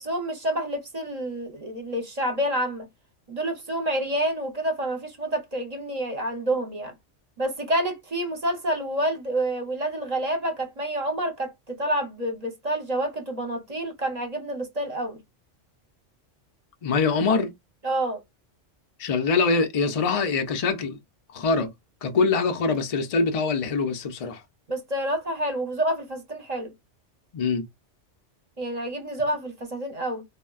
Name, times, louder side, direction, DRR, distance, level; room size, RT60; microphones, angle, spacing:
voice 1, 0.0-2.9 3.3-6.9 7.4-15.2 17.8-18.2 24.7-26.7 28.6-30.2, right 1 dB, 40° right, 0.8 m, -28 dB
voice 2, 16.8-17.5 19.0-21.0 21.3-21.7 22.0-24.4 27.3-27.6, left 4 dB, 55° left, 0.4 m, -24 dB
3.6 x 2.1 x 2.3 m
omnidirectional pair, 1.2 m